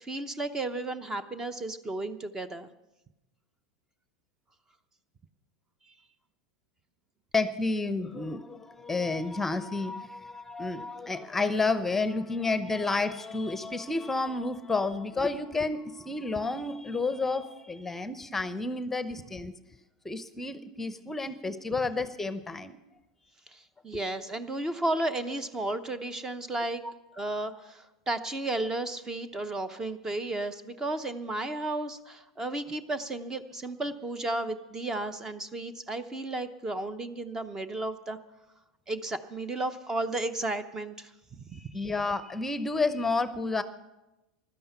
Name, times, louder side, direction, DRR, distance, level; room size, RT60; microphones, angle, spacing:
voice 1, 0.0-2.7 23.5-26.8 27.2-38.2 38.9-41.9, right 2 dB, 20° right, 13 dB, 0.8 m, -33 dB
voice 2, 7.3-19.5 20.0-22.8 23.9-24.0 41.5-43.6, left 3 dB, 10° left, 12 dB, 0.8 m, -30 dB
16.0 x 12.0 x 5.7 m, 0.99 s
hypercardioid pair, 90°, 3 cm